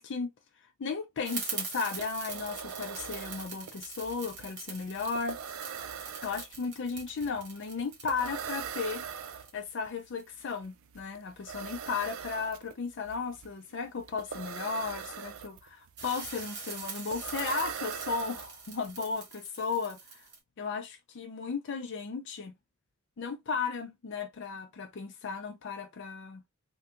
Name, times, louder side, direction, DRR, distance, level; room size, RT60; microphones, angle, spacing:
voice 1, 0.0-5.4 6.2-9.0 9.5-20.3 20.6-22.5 23.2-26.4, left 5 dB, 60° left, 0.4 m, -35 dB
sound 1, 1.2-10.2 16.0-20.4, right 5 dB, 55° right, 1.3 m, -43 dB
sound 2, 1.5-1.6 1.8-18.9, right 7 dB, 80° right, 0.5 m, -42 dB
3.4 x 2.3 x 2.8 m
head